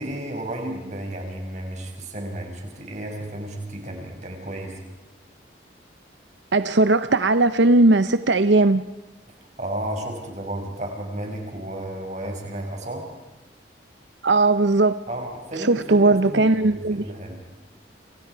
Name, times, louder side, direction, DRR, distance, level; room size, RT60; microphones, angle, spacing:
voice 1, 0.0-4.8 9.6-13.1 15.1-17.4, right 1 dB, 40° right, 5.9 m, -33 dB
voice 2, 6.5-8.8 14.2-14.9 15.6-17.0, right 2 dB, 80° right, 0.8 m, -18 dB
29.5 x 29.0 x 4.7 m
head